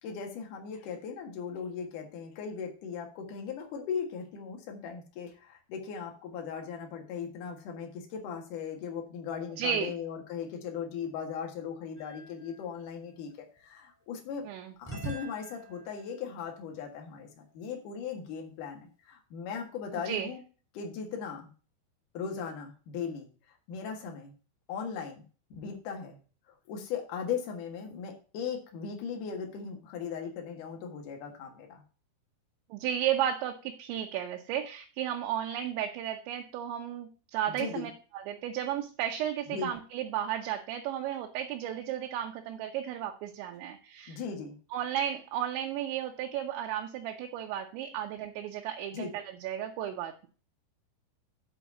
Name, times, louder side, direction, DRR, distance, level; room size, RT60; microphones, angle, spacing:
voice 1, 0.0-13.3 13.6-14.4 14.8-20.4 20.7-21.5 22.1-23.3 23.7-24.3 24.7-25.2 25.5-26.2 26.5-31.8 37.5-37.9 39.5-39.7 44.1-44.6 48.9-49.1, left 6 dB, 55° left, 3 dB, 2.6 m, -38 dB
voice 2, 9.6-10.0 14.4-14.7 19.9-20.3 32.7-44.2 44.7-50.3, right 10 dB, 80° right, 2 dB, 3.0 m, -34 dB
sound 1, 12.0-14.1 14.8-17.7, right 2 dB, 5° left, 2.2 m, -46 dB
8.5 x 4.6 x 7.0 m, 0.37 s
omnidirectional pair, 5.5 m